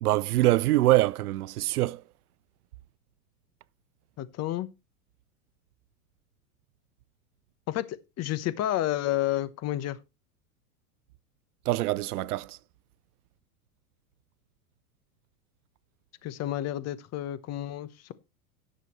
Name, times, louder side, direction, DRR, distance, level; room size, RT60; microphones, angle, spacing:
voice 1, 0.0-2.0 11.7-12.6, right 16 dB, 80° right, 0.7 m, -24 dB
voice 2, 4.2-4.7 7.7-10.0 16.2-18.1, left 13 dB, 35° left, 1.1 m, -30 dB
17.5 x 6.8 x 3.1 m
hypercardioid pair, 115°, 44 cm